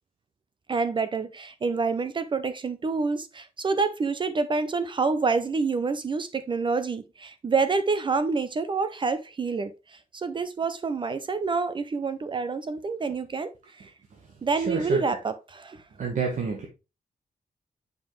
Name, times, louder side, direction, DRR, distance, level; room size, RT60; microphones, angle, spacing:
voice 1, 0.7-13.5 13.8-13.9 14.4-15.8, right 4 dB, 35° right, 0.5 m, -27 dB
voice 2, 14.5-15.0 16.0-16.7, right 5 dB, 55° right, 1.2 m, -29 dB
7.0 x 5.5 x 3.1 m
wide cardioid pair, 180°, 15 cm